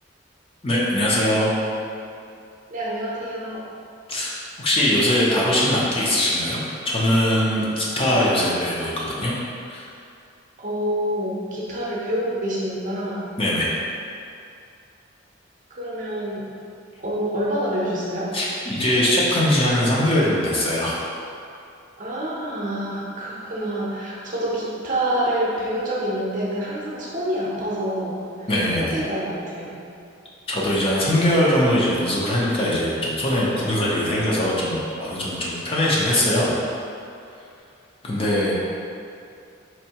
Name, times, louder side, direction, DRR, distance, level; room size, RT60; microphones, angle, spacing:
voice 1, 0.6-1.5 4.1-9.3 9.7-9.9 13.4-13.7 18.3-21.0 28.5-29.0 30.5-36.5 38.0-38.5, left 1 dB, 30° left, -6 dB, 0.6 m, -21 dB
voice 2, 2.7-3.6 10.6-13.2 15.7-16.5 17.0-18.3 22.0-28.5 28.8-29.8, right 1 dB, 40° right, -6 dB, 0.7 m, -27 dB
4.4 x 2.7 x 2.8 m, 2.5 s
head